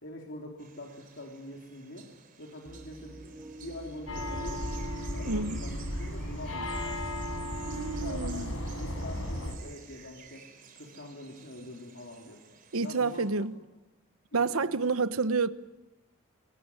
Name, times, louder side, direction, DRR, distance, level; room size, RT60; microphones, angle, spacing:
voice 1, 0.0-2.1 2.4-4.7 5.1-7.0 8.0-10.5 10.8-12.4 12.8-13.3 14.3-15.0, left 1 dB, 60° left, 3.6 m, -44 dB
sound 1, 0.6-13.3, right 7 dB, 40° right, 3.8 m, -53 dB
sound 2, 2.6-8.0, right 1 dB, 10° right, 2.6 m, -50 dB
sound 3, 4.1-9.6, left 1 dB, 85° left, 4.9 m, -35 dB
voice 2, 5.3-5.6 7.7-8.5 12.7-13.5 14.3-15.5, right 4 dB, 85° right, 1.1 m, -29 dB
25.5 x 20.0 x 9.8 m
head